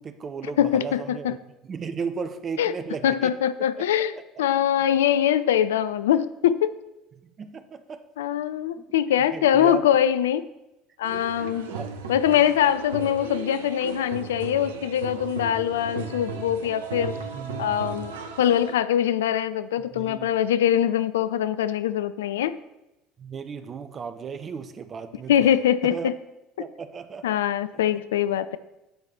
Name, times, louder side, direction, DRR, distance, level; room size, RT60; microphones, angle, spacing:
voice 1, 0.0-1.4 1.6-3.3 3.6-3.8 4.1-4.2 7.2-8.0 8.8-8.9 9.3-9.8 11.4-11.9 17.3-17.7 19.9-20.3 23.2-25.5 25.8-26.1 26.6-27.4, right 6 dB, 35° right, 10 dB, 0.8 m, -35 dB
voice 2, 0.6-1.4 2.6-2.7 3.0-6.7 8.2-10.4 11.0-11.7 12.1-17.2 17.6-22.6 25.3-26.1 27.2-28.6, left 10 dB, 70° left, 14 dB, 0.3 m, -23 dB
sound 1, 11.0-18.7, right 5 dB, 70° right, 0.7 m, -36 dB
9.2 x 4.7 x 5.6 m, 0.95 s
figure-of-eight pair, 60°, 0 cm